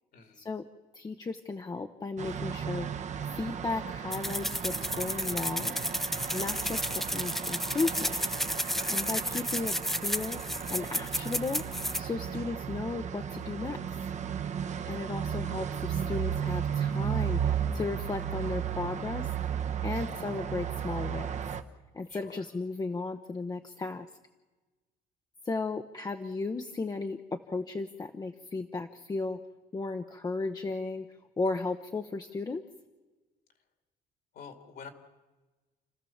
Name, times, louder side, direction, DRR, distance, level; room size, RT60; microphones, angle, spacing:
voice 1, 0.1-0.5 8.7-9.0 19.8-20.1 22.1-22.4 34.3-34.9, left 6 dB, 65° left, 6 dB, 2.6 m, -49 dB
voice 2, 0.9-2.9 3.3-5.7 6.3-6.9 7.1-8.2 8.9-11.6 12.0-13.8 14.8-19.3 19.8-21.3 21.9-24.1 25.4-29.4 29.7-31.1 31.4-32.6, left 3 dB, 25° left, 6 dB, 0.9 m, -35 dB
sound 1, 2.2-21.6, right 8 dB, 45° right, 1.2 m, -34 dB
sound 2, 4.1-12.0, equal, ahead, 0.6 m, -32 dB
30.0 x 14.0 x 7.2 m, 1.2 s
cardioid pair, 110°, 17 cm